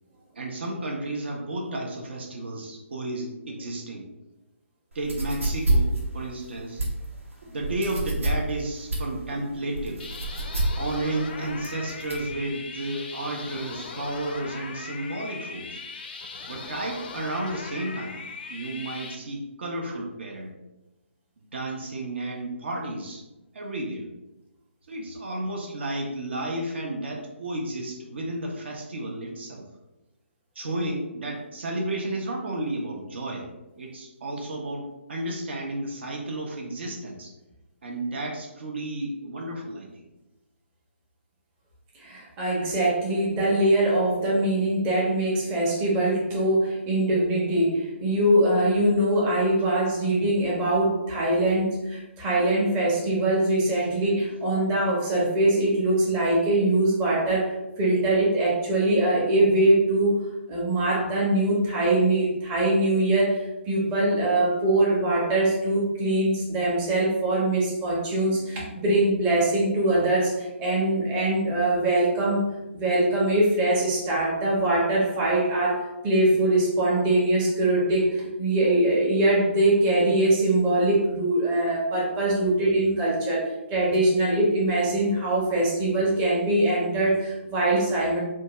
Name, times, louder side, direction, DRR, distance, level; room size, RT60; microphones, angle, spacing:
voice 1, 0.4-4.1 4.9-6.9 7.5-10.1 10.8-15.8 16.5-20.6 21.4-23.2 23.5-24.1 24.9-29.7 30.6-33.5 33.8-37.3 37.8-40.0, right 1 dB, 60° right, 0 dB, 0.6 m, -32 dB
sound 1, 4.9-12.3, right 2 dB, 85° right, 0.9 m, -28 dB
sound 2, 10.0-19.1, left 4 dB, 45° left, 0.4 m, -39 dB
voice 2, 41.9-60.2 60.5-72.4 72.7-88.2, right 1 dB, 20° right, -4 dB, 0.7 m, -23 dB
2.6 x 2.2 x 3.0 m, 0.99 s
figure-of-eight pair, 145°, 7 cm